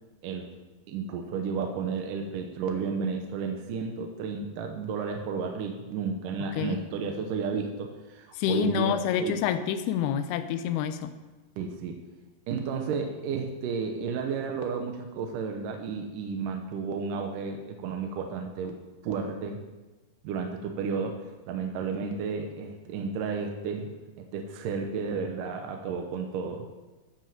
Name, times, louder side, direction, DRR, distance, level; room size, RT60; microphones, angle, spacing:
voice 1, 0.2-0.5 0.9-9.4 11.6-12.0 12.5-18.8 19.0-19.6 20.2-23.9 24.2-26.6, right 5 dB, 70° right, 4 dB, 2.2 m, -32 dB
voice 2, 6.5-6.8 8.3-11.1, left 9 dB, 80° left, 10 dB, 2.7 m, -28 dB
13.0 x 6.2 x 7.1 m, 1.2 s
omnidirectional pair, 4.6 m